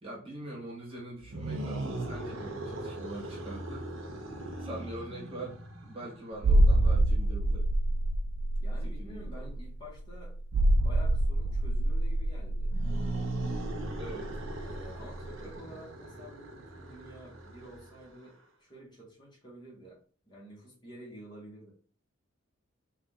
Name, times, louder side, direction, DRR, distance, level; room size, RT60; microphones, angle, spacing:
voice 1, 0.0-3.9 4.6-7.7 8.8-9.3 14.0-14.3 15.6-15.7, right 1 dB, 30° right, -3 dB, 1.6 m, -43 dB
sound 1, 1.2-6.4 12.6-18.3, right 2 dB, 85° right, 0.9 m, -39 dB
sound 2, 6.4-14.8 15.1-15.2, right 1 dB, 60° right, 0.3 m, -26 dB
voice 2, 8.6-10.3 10.7-12.8 14.6-20.0 20.3-21.7, equal, 20° left, -4 dB, 1.7 m, -50 dB
4.1 x 2.7 x 3.7 m, 0.43 s
head